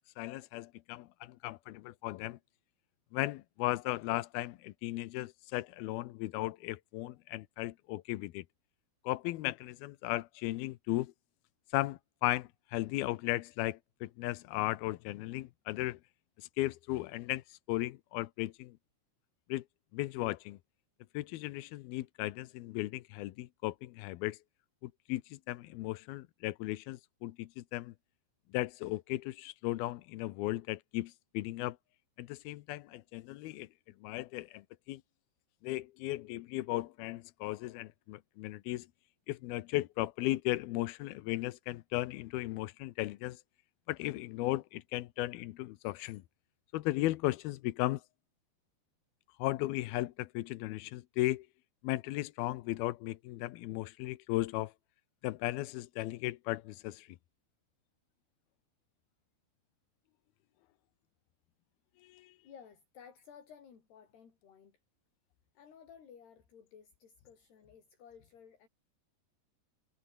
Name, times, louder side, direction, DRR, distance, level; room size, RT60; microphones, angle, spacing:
voice 1, 0.2-2.4 3.1-8.4 9.0-11.1 11.7-16.0 16.4-18.7 19.5-19.6 19.9-20.6 21.1-24.4 24.8-27.9 28.5-31.8 32.2-33.7 34.0-34.6 34.9-35.0 35.6-38.9 39.3-43.4 43.9-46.2 46.7-48.0 49.4-51.5 51.8-54.7 55.2-57.1 62.0-62.3, left 17 dB, 75° left, 2.3 m, -36 dB
voice 2, 62.4-64.8 65.6-68.7, left 7 dB, 60° left, 6.2 m, -56 dB
omnidirectional pair, 5.3 m